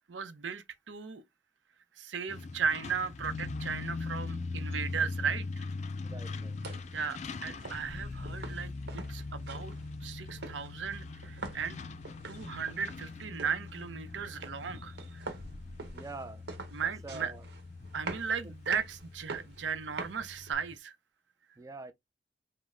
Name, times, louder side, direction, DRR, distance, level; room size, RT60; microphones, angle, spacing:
voice 1, 0.1-1.2 2.0-5.6 6.9-9.7 10.0-11.8 12.3-15.3 16.7-17.3 17.9-21.0, right 6 dB, 85° right, 0.6 m, -36 dB
Truck, 2.3-20.8, left 3 dB, 40° left, 0.4 m, -41 dB
voice 2, 6.0-6.8 15.9-16.4 17.0-17.4 18.4-18.5 21.6-21.9, right 3 dB, 20° right, 0.4 m, -45 dB
sound 1, 6.3-20.5, right 3 dB, 65° right, 1.0 m, -46 dB
5.2 x 2.1 x 3.6 m
head